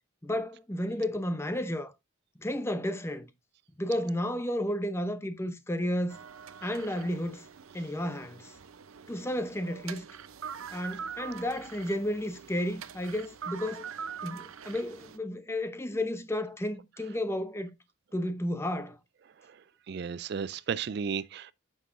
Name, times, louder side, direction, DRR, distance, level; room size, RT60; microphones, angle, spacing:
voice 1, 0.2-1.9 2.4-3.3 3.8-6.2 6.6-7.5 7.7-8.5 9.1-10.1 10.7-13.9 14.2-17.7 18.1-19.0, left 1 dB, 10° left, 0.7 m, -32 dB
sound 1, 6.1-15.2, right 7 dB, 85° right, 0.7 m, -44 dB
voice 2, 19.4-21.5, right 6 dB, 50° right, 0.4 m, -35 dB
9.2 x 6.4 x 2.5 m
head